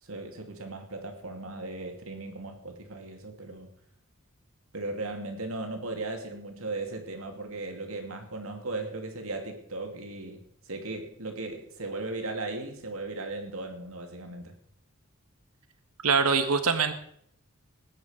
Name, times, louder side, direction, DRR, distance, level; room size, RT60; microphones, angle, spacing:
voice 1, 0.0-3.7 4.7-14.6, right 2 dB, 70° right, 4 dB, 2.5 m, -37 dB
voice 2, 16.0-16.9, right 5 dB, 90° right, 9 dB, 1.5 m, -23 dB
19.5 x 9.5 x 5.1 m, 0.68 s
head